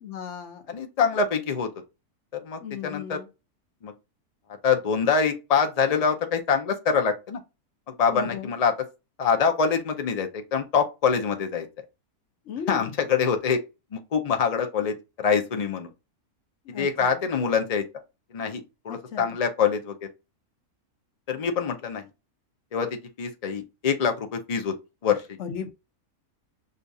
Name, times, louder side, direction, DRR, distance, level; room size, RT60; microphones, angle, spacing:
voice 1, 0.0-0.6 2.6-3.3 8.1-8.5 12.5-12.9 16.6-17.2 18.9-19.3 25.4-25.7, left 7 dB, 60° left, 1.1 m, -36 dB
voice 2, 0.7-1.7 2.4-3.2 3.8-3.9 4.6-7.4 8.0-8.7 9.2-11.7 12.7-13.6 13.9-15.9 16.7-17.8 18.3-19.9 21.3-22.0 22.7-24.7 25.0-25.4, left 6 dB, 80° left, 0.3 m, -25 dB
6.5 x 2.4 x 2.6 m
omnidirectional pair, 1.5 m